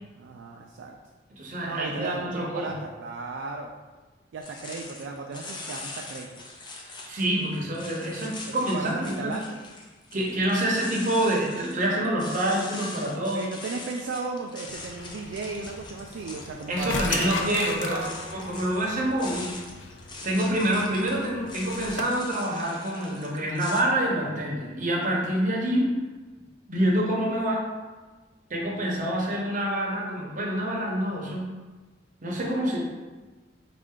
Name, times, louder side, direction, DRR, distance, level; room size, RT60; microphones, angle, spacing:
voice 1, 0.1-1.0 1.7-3.7 4.3-6.3 8.5-9.6 10.2-10.4 13.3-18.2 20.4-20.5, right 4 dB, 80° right, 1 dB, 0.3 m, -36 dB
voice 2, 1.3-2.7 7.1-9.4 10.1-13.5 16.7-19.6 20.2-25.9 26.7-27.6 28.5-31.5 32.2-32.8, right 1 dB, 45° right, -2 dB, 0.8 m, -27 dB
sound 1, 4.4-23.8, left 2 dB, 25° left, 0.4 m, -42 dB
sound 2, 14.7-22.0, left 4 dB, 90° left, 0.4 m, -37 dB
4.2 x 2.5 x 3.6 m, 1.3 s
head